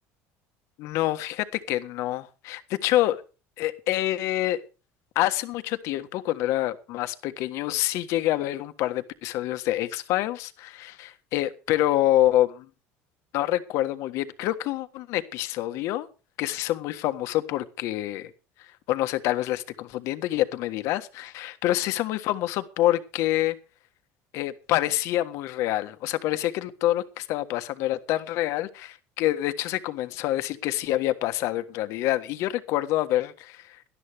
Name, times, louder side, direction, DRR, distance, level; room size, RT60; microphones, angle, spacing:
voice 1, 0.8-3.2 3.6-4.6 5.1-12.7 13.3-16.1 16.4-18.3 18.9-23.6 24.3-33.8, left 14 dB, 60° left, 1.5 m, -27 dB
18.5 x 12.5 x 3.5 m
cardioid pair, 155°, 6 cm